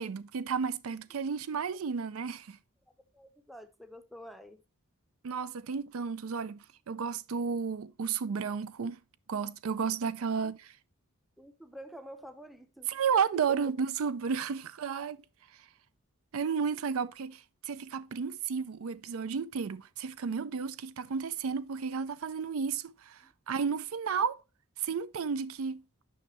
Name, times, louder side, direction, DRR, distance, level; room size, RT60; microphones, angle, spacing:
voice 1, 0.0-2.6 5.2-9.0 9.3-10.6 12.9-15.2 16.3-24.4 24.8-25.8, right 6 dB, 80° right, 0.4 m, -32 dB
voice 2, 3.1-4.6 10.3-10.5 11.4-12.9 14.9-15.0 23.2-23.3, equal, ahead, 0.5 m, -49 dB
9.4 x 5.5 x 3.1 m
head